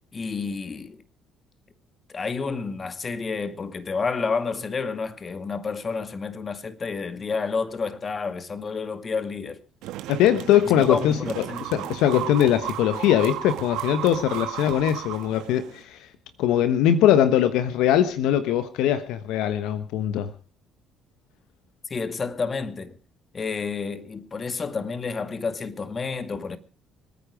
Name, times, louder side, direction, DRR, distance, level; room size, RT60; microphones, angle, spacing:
voice 1, 0.1-1.0 2.1-9.6 10.7-11.9 21.9-23.0 23.3-26.6, left 4 dB, 35° left, 2.0 m, -30 dB
sound 1, 9.8-15.8, right 13 dB, 75° right, 1.4 m, -34 dB
voice 2, 10.1-11.4 11.7-16.0 16.4-20.3, left 10 dB, 75° left, 1.2 m, -21 dB
26.0 x 9.4 x 5.0 m
supercardioid pair, 65°, 0 cm